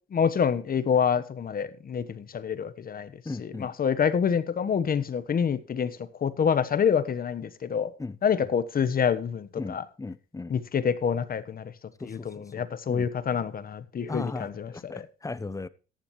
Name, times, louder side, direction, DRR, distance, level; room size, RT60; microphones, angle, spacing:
voice 1, 0.1-3.1 3.4-7.9 8.2-9.8 10.5-11.7 12.0-15.0, left 7 dB, 45° left, 1.2 m, -27 dB
voice 2, 3.2-3.7 8.0-8.2 9.6-10.5 12.0-13.1 14.1-15.7, left 3 dB, 15° left, 0.8 m, -37 dB
14.0 x 10.5 x 3.1 m
cardioid pair, 90°, 20 cm